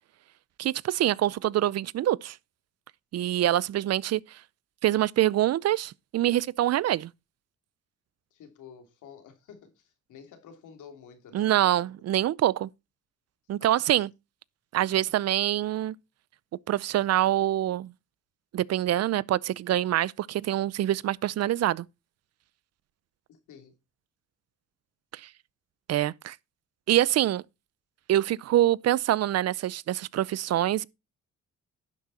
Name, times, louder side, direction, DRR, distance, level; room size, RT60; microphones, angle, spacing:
voice 1, 0.6-2.4 3.1-4.2 4.8-7.1 11.3-12.7 13.5-14.1 14.7-15.9 16.7-17.9 18.5-21.9 25.2-25.3 25.9-26.4 26.9-27.4 28.1-30.8, right 13 dB, 55° right, 0.5 m, -25 dB
voice 2, 8.3-11.7 13.6-14.0 23.3-23.7, left 7 dB, 85° left, 3.1 m, -50 dB
11.0 x 7.5 x 4.2 m
cardioid pair, 90°, 30 cm